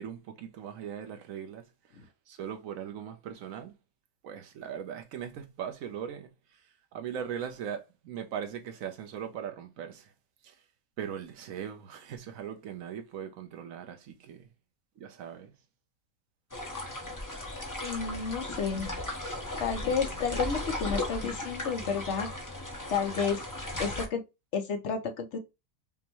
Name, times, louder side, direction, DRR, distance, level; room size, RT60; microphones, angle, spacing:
voice 1, 0.0-1.7 1.9-3.7 4.2-6.6 6.9-10.1 10.4-10.6 11.0-14.5 15.0-15.5, right 8 dB, 70° right, 1.1 m, -39 dB
sound 1, 16.5-24.1, left 1 dB, 15° left, 0.8 m, -36 dB
voice 2, 17.8-18.9 19.6-22.3 22.9-23.4 23.8-24.2 24.5-25.4, left 6 dB, 60° left, 1.0 m, -31 dB
5.3 x 2.2 x 3.0 m
omnidirectional pair, 1.5 m